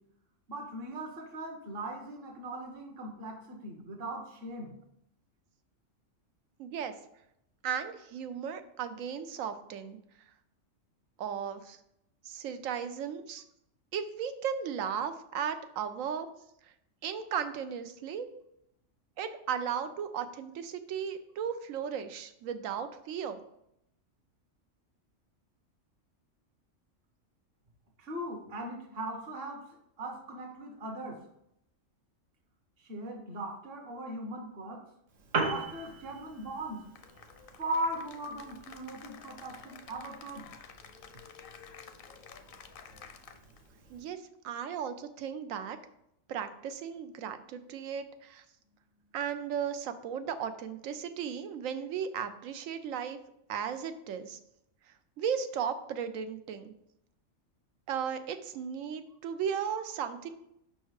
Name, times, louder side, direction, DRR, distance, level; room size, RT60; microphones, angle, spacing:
voice 1, 0.5-4.7 28.0-29.6 30.0-31.2 32.8-34.8 35.4-36.9 37.6-40.5, right 1 dB, 50° right, 1 dB, 1.2 m, -39 dB
voice 2, 6.6-6.9 7.6-10.0 11.2-11.8 12.2-13.4 13.9-16.3 17.0-18.3 19.2-23.4 43.9-45.8 46.3-48.4 49.1-53.2 53.5-54.4 55.2-56.7 57.9-60.3, right 7 dB, 85° right, 10 dB, 1.0 m, -35 dB
Piano, 35.1-44.1, right 3 dB, 70° right, 1.3 m, -41 dB
Cheering / Applause, 37.0-43.7, left 7 dB, 60° left, 0.6 m, -51 dB
5.6 x 4.4 x 4.7 m, 0.78 s
omnidirectional pair, 1.3 m